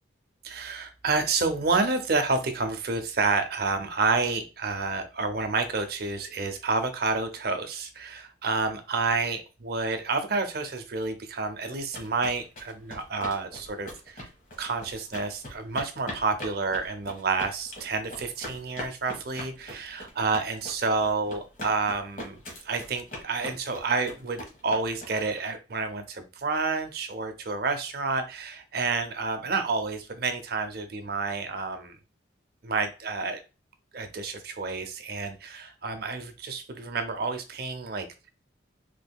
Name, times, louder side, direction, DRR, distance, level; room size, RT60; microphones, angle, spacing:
voice 1, 0.4-14.3 14.6-22.4 22.6-32.0 32.6-33.4 33.9-38.1, right 4 dB, 55° right, 8 dB, 0.6 m, -29 dB
sound 1, 11.6-25.4, equal, 45° left, 1.3 m, -41 dB
3.5 x 3.3 x 2.2 m, 0.31 s
head